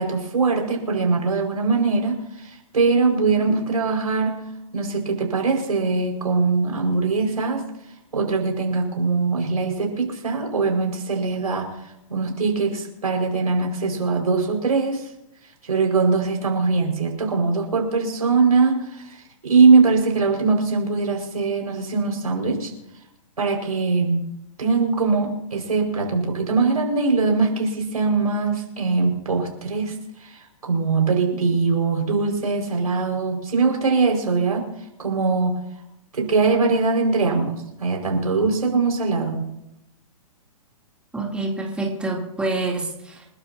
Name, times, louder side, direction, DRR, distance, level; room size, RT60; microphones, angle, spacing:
voice 1, 0.0-2.2 2.7-4.4 4.7-7.6 8.1-11.7 12.1-15.0 15.7-18.9 19.4-22.7 23.4-24.3 24.6-30.0 30.3-34.7 35.0-35.6 36.1-39.5, right 4 dB, 85° right, 1 dB, 5.5 m, -21 dB
voice 2, 41.1-43.3, right 2 dB, 5° right, -2 dB, 3.2 m, -27 dB
29.0 x 12.0 x 2.9 m, 0.85 s
hypercardioid pair, 125°, 19 cm